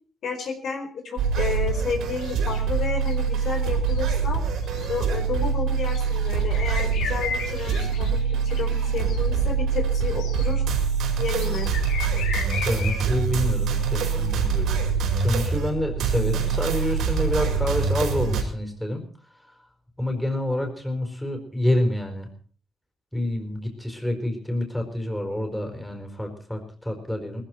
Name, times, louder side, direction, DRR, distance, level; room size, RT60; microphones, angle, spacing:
voice 1, 0.2-4.4 4.8-8.2 8.4-10.6 11.2-11.7, left 5 dB, 65° left, 3 dB, 4.4 m, -31 dB
sound 1, 1.2-18.4, right 6 dB, 80° right, 4.7 m, -24 dB
sound 2, 2.1-2.6 3.0-3.4 3.9-4.0 4.6-5.0 5.9-9.2 10.2-10.4 11.4-13.0, left 5 dB, 85° left, 4.2 m, -34 dB
voice 2, 12.6-14.8 15.2-19.0 20.0-22.3 23.1-27.4, left 1 dB, 5° left, 4 dB, 4.7 m, -27 dB
20.0 x 15.0 x 4.5 m, 0.43 s
cardioid pair, 90°, 0 cm